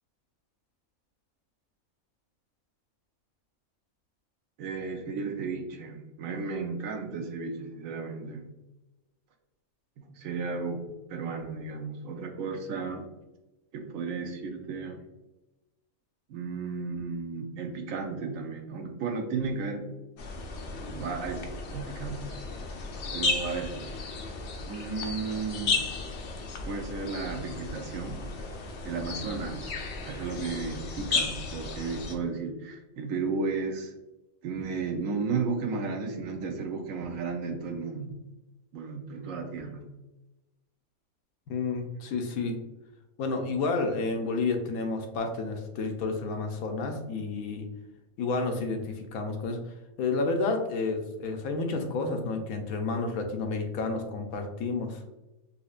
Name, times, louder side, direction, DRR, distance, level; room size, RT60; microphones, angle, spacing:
voice 1, 4.6-8.5 10.0-13.1 13.7-15.0 16.3-19.9 20.8-22.4 23.1-23.8 24.7-25.9 26.6-28.2 28.8-29.7 30.0-33.9 34.4-38.2 38.7-39.9, right 4 dB, 70° right, 4 dB, 1.0 m, -34 dB
sound 1, 20.2-32.1, left 3 dB, 60° left, 0.8 m, -34 dB
voice 2, 41.5-42.6 43.2-47.7 48.2-49.6 50.0-55.0, left 3 dB, 80° left, 5 dB, 1.0 m, -30 dB
4.3 x 2.7 x 2.4 m, 1.0 s
omnidirectional pair, 1.5 m